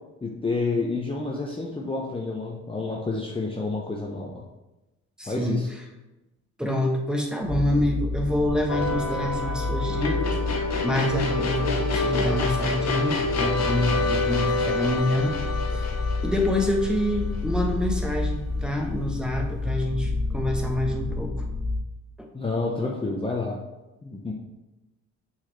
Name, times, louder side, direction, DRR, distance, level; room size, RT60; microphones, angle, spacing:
voice 1, 0.2-4.4 5.3-5.7 22.3-23.6 24.0-24.3, left 3 dB, 20° left, -2 dB, 0.8 m, -29 dB
voice 2, 5.2-5.6 6.6-15.4 15.7-15.9 16.2-21.4 22.2-22.3, left 1 dB, 5° right, 1 dB, 1.1 m, -27 dB
sound 1, 7.4-21.8, left 3 dB, 20° right, 2.0 m, -30 dB
sound 2, 8.7-17.9, left 3 dB, 60° left, 1.1 m, -28 dB
7.1 x 4.2 x 3.2 m, 1.0 s
cardioid pair, 90°, 30 cm